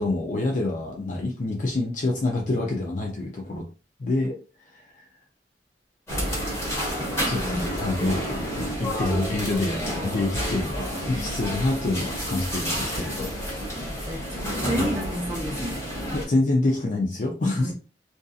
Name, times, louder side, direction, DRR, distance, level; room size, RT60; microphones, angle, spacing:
voice 1, 0.0-3.6 4.0-4.4 4.7-4.9 7.3-13.3 16.1-17.7, left 2 dB, 45° left, 0.5 m, -26 dB
sound 1, 6.1-16.2, equal, 15° left, 1.3 m, -30 dB
voice 2, 13.7-15.8 17.6-17.7, equal, 15° right, 0.6 m, -31 dB
2.6 x 2.5 x 2.3 m
head